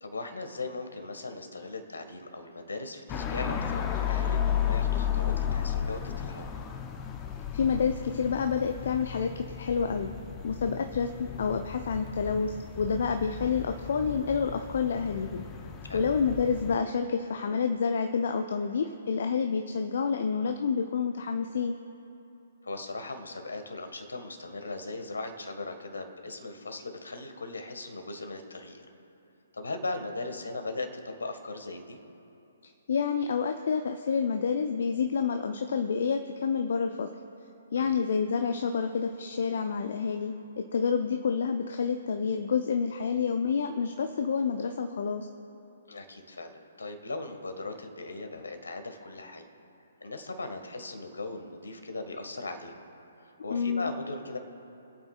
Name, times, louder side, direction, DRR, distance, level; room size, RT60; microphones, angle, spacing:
voice 1, 0.0-6.5 15.8-16.0 22.6-28.9 29.5-32.0 37.8-37.9 45.9-49.5 50.0-52.8 53.2-54.4, left 3 dB, 70° left, 6 dB, 1.7 m, -38 dB
sound 1, 3.1-16.8, left 9 dB, 20° left, 0.8 m, -34 dB
voice 2, 7.5-9.3 9.6-10.1 10.4-15.4 15.9-21.8 32.9-37.1 37.7-45.3 53.5-53.9, left 6 dB, 55° left, 6 dB, 0.6 m, -28 dB
25.5 x 8.7 x 2.5 m, 2.9 s
figure-of-eight pair, 130°, 0 cm